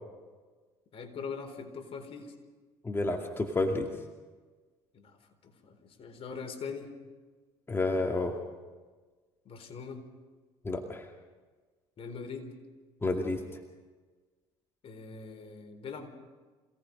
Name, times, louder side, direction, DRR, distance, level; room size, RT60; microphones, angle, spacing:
voice 1, 0.9-2.3 4.9-5.2 5.4-6.9 9.4-10.1 12.0-12.6 14.8-16.1, left 5 dB, 55° left, 5 dB, 4.2 m, -42 dB
voice 2, 2.8-3.9 7.7-8.4 10.6-11.1 13.0-13.4, left 2 dB, 20° left, 2 dB, 2.5 m, -30 dB
27.0 x 18.0 x 5.4 m, 1.4 s
supercardioid pair, 80°, 12 cm